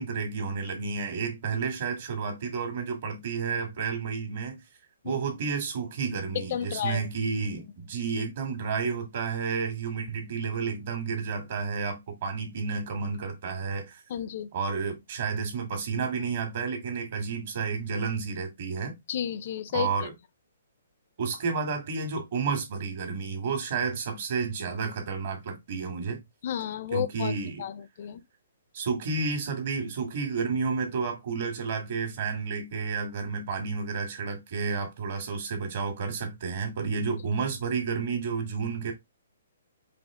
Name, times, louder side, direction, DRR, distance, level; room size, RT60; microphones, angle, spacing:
voice 1, 0.0-4.6 5.0-14.0 14.5-18.9 19.7-20.1 21.2-26.2 26.9-27.6 28.7-38.9, right 5 dB, 45° right, 1.8 m, -31 dB
voice 2, 6.3-7.0 14.1-14.5 19.1-19.9 26.4-27.3 27.6-28.2, left 9 dB, 45° left, 0.4 m, -31 dB
5.0 x 2.7 x 3.6 m
hypercardioid pair, 165°, 0 cm